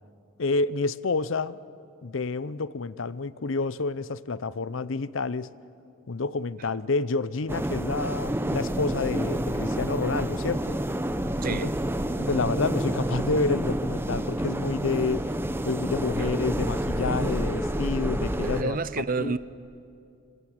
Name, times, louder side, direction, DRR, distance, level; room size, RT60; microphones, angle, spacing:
voice 1, 0.4-1.6 2.0-5.5 6.1-10.8 11.5-11.7 12.2-15.3 15.6-18.8 19.2-19.4, left 3 dB, 65° left, 0.7 m, -29 dB
sound 1, 7.5-18.6, right 1 dB, 10° right, 0.9 m, -29 dB
voice 2, 11.4-11.7 16.2-16.3 18.4-19.4, right 4 dB, 45° right, 0.7 m, -29 dB
26.0 x 26.0 x 8.0 m
head